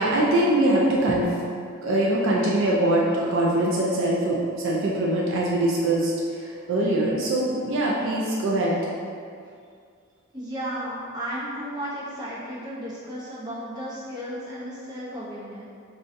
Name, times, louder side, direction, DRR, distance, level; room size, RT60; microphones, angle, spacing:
voice 1, 0.0-1.4 1.8-8.7, right 1 dB, 65° right, -4 dB, 0.4 m, -23 dB
voice 2, 10.3-15.7, equal, 20° right, -9 dB, 0.7 m, -34 dB
3.8 x 2.3 x 2.5 m, 2.3 s
head